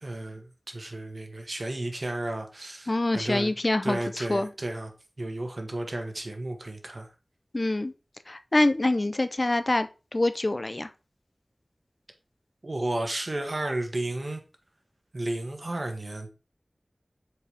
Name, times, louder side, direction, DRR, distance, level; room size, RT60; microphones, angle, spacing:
voice 1, 0.0-3.5 3.8-4.9 5.2-7.1 12.6-14.4 15.1-16.3, right 1 dB, 55° right, 4 dB, 1.5 m, -33 dB
voice 2, 2.9-4.5 7.5-7.9 8.3-10.9, left 2 dB, 45° left, 11 dB, 0.6 m, -25 dB
8.0 x 4.8 x 3.5 m, 0.31 s
wide cardioid pair, 60°, 0 cm